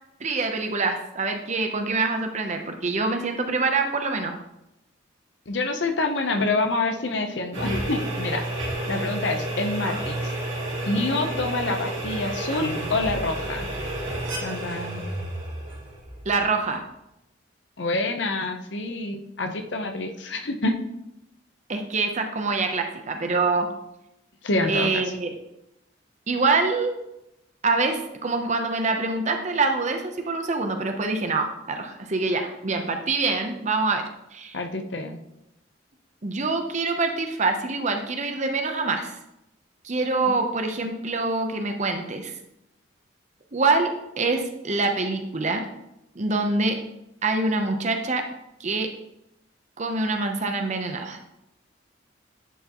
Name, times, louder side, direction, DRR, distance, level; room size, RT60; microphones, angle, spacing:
voice 1, 0.2-4.3 16.3-16.8 21.7-23.7 24.6-25.3 26.3-27.0 27.6-34.0 34.3-34.6 36.2-39.1 39.8-42.3 43.5-43.9 44.2-45.6 46.2-46.8 47.2-48.2 48.6-48.9 49.8-51.2, right 3 dB, 40° right, 5 dB, 0.8 m, -25 dB
voice 2, 5.5-8.4 8.9-10.3 10.9-13.7 14.4-15.0 17.8-20.7 24.4-25.0 34.5-35.2 40.3-40.4, left 2 dB, 70° left, 5 dB, 0.8 m, -27 dB
sound 1, 7.5-16.7, right 1 dB, 80° right, 2.7 m, -31 dB
9.9 x 4.6 x 3.0 m, 0.86 s
head